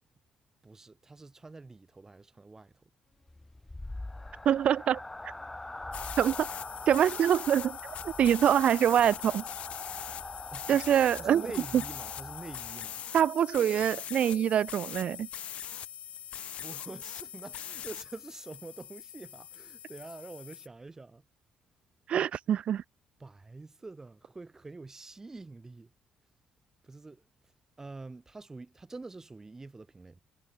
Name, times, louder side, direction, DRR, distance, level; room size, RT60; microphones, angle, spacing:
voice 1, 0.6-2.8 10.5-10.8 11.2-13.0 16.6-21.3 23.2-25.9 26.8-27.2 27.8-30.2, right 3 dB, 20° right, 6.0 m, -46 dB
sound 1, 3.2-13.2, left 2 dB, 15° left, 2.4 m, -43 dB
voice 2, 4.5-5.0 6.2-6.5 6.9-9.4 10.7-11.5 11.7-11.8 13.1-15.3 22.1-22.8, right 9 dB, 55° right, 0.3 m, -25 dB
sound 2, 5.9-20.7, left 10 dB, 60° left, 0.4 m, -42 dB
cardioid pair, 85°, 2 cm